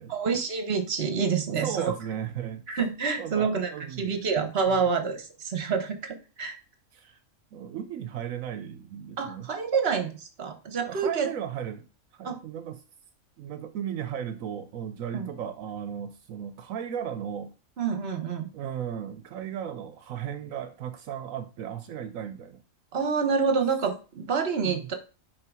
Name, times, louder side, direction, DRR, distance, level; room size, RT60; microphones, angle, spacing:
voice 1, 0.1-1.9 2.7-3.7 4.0-6.6 9.2-11.3 12.2-12.4 15.1-15.3 17.8-18.5 22.9-24.9, right 5 dB, 50° right, 7 dB, 1.3 m, -27 dB
voice 2, 1.5-2.8 3.2-4.2 4.7-4.9 6.9-7.2 7.5-9.5 10.8-11.9 12.1-12.8 13.4-17.5 18.5-22.6 24.6-24.9, right 9 dB, 80° right, 9 dB, 1.1 m, -36 dB
5.7 x 5.0 x 4.8 m, 0.35 s
omnidirectional pair, 1.4 m